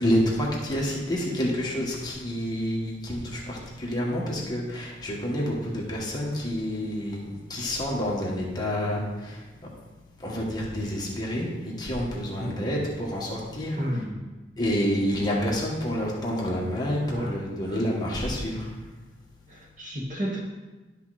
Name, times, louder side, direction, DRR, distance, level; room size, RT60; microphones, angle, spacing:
voice 1, 0.0-9.5 10.2-13.8 14.6-18.7, equal, 20° left, -4 dB, 1.7 m, -28 dB
voice 2, 12.4-12.7 13.8-14.3 17.0-17.8 19.5-20.4, equal, 40° right, -3 dB, 1.8 m, -33 dB
11.5 x 5.7 x 4.2 m, 1.2 s
head